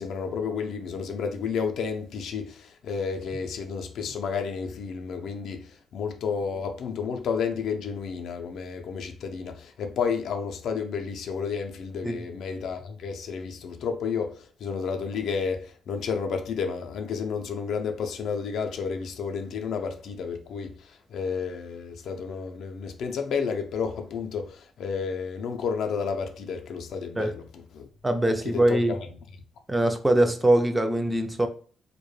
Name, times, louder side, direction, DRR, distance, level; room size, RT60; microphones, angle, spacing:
voice 1, 0.0-27.9 28.3-29.4, left 6 dB, 70° left, 0.4 m, -31 dB
voice 2, 28.0-28.9 29.7-31.5, right 1 dB, 15° right, 0.3 m, -22 dB
2.1 x 2.1 x 3.1 m
cardioid pair, 90°, 0 cm